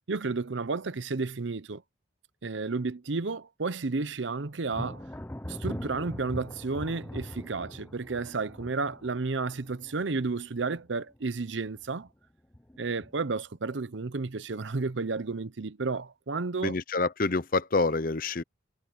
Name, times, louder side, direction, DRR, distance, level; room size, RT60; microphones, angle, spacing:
voice 1, 0.1-1.8 2.4-5.0 5.5-12.1 12.8-16.7, right 3 dB, 70° right, 0.8 m, -32 dB
Thunder, 4.7-11.2 11.5-12.1 12.5-13.4, left 1 dB, 10° left, 0.7 m, -41 dB
voice 2, 16.6-18.4, left 3 dB, 45° left, 0.8 m, -27 dB
head